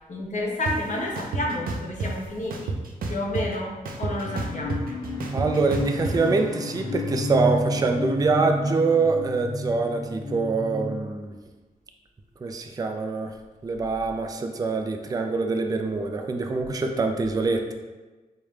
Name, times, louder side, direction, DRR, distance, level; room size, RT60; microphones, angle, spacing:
voice 1, 0.1-2.7 3.1-5.0, left 1 dB, 55° left, -1 dB, 0.8 m, -30 dB
sound 1, 0.7-0.8 1.2-2.1 2.5-3.6 3.9-6.1, right 3 dB, 80° right, 0.5 m, -30 dB
sound 2, 4.2-11.0, left 1 dB, 25° left, 0.6 m, -30 dB
voice 2, 5.3-11.4 12.4-13.3 13.6-17.7, right 4 dB, 25° right, 4 dB, 0.3 m, -25 dB
4.8 x 2.2 x 3.2 m, 1.2 s
cardioid pair, 80°, 15 cm